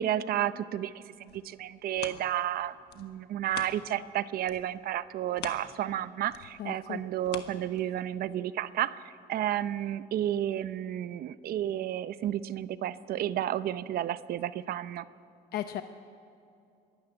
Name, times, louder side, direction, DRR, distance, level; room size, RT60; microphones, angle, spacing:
voice 1, 0.0-15.1, right 12 dB, 65° right, 15 dB, 0.7 m, -32 dB
sound 1, 1.0-4.1 4.4-8.2 8.7-8.8, left 10 dB, 80° left, 1.4 m, -46 dB
voice 2, 6.6-7.0 15.5-15.8, left 11 dB, 65° left, 9 dB, 0.8 m, -35 dB
23.0 x 13.0 x 8.8 m, 2.6 s
cardioid pair, 110°, 17 cm